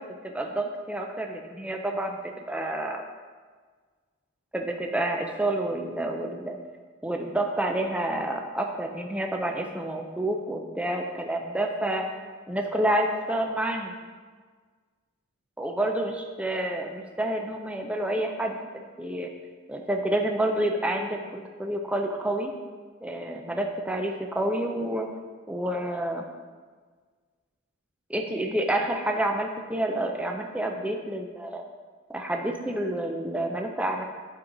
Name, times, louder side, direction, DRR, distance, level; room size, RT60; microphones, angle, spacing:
voice 1, 0.0-2.1 2.5-3.0 4.5-6.6 7.0-12.0 12.5-13.9 15.6-18.6 19.0-19.3 19.7-22.5 23.0-25.1 25.5-26.3 28.1-31.7 32.1-34.0, right 1 dB, 5° right, 2 dB, 0.5 m, -29 dB
11.0 x 4.6 x 3.9 m, 1.5 s
head